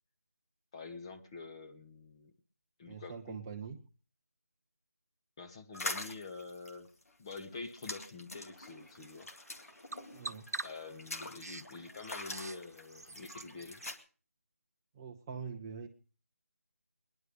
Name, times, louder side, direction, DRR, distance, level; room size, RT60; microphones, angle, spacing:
voice 1, 0.7-2.3 2.8-3.4 5.4-6.9 7.2-9.3 10.6-13.8, left 4 dB, 20° left, 4 dB, 0.9 m, -47 dB
voice 2, 2.9-3.8 10.1-10.4 14.9-15.9, right 6 dB, 15° right, 2 dB, 0.7 m, -43 dB
sound 1, 5.7-13.9, left 2 dB, 65° left, 2.1 m, -44 dB
Bird vocalization bird call bird song, 8.4-14.0, right 3 dB, 80° right, 0.9 m, -47 dB
20.5 x 11.0 x 5.1 m, 0.38 s
figure-of-eight pair, 165°, 8 cm